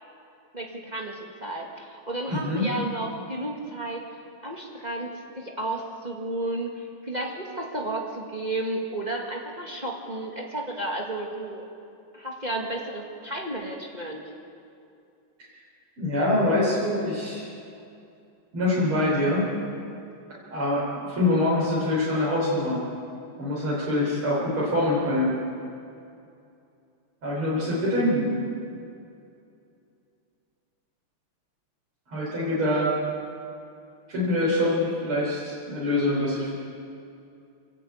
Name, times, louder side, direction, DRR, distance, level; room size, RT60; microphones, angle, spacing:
voice 1, 0.5-4.1 4.4-11.6 12.1-14.2, right 1 dB, 20° right, -1 dB, 2.0 m, -32 dB
voice 2, 2.3-2.7 16.0-17.5 18.5-19.5 20.5-22.9 23.4-25.3 27.2-28.3 32.1-32.9 34.1-36.5, left 1 dB, 85° right, -8 dB, 5.4 m, -24 dB
29.0 x 10.5 x 8.8 m, 2.6 s
omnidirectional pair, 2.3 m